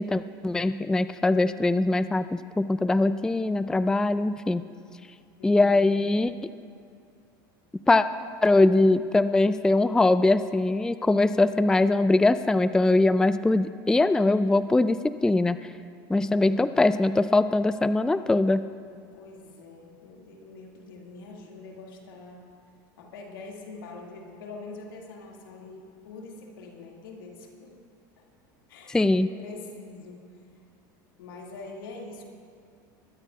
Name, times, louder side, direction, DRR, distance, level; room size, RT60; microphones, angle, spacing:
voice 1, 0.0-4.6 5.4-6.3 7.9-8.0 8.4-15.6 16.1-18.7 28.9-29.3, left 2 dB, 5° left, 13 dB, 0.3 m, -22 dB
voice 2, 5.4-5.9 16.1-16.7 18.9-22.5 23.0-27.8 28.2-28.3 28.7-30.2 31.2-32.2, left 3 dB, 85° left, 0 dB, 2.1 m, -44 dB
21.5 x 13.5 x 2.4 m, 2.4 s
hypercardioid pair, 95°, 11 cm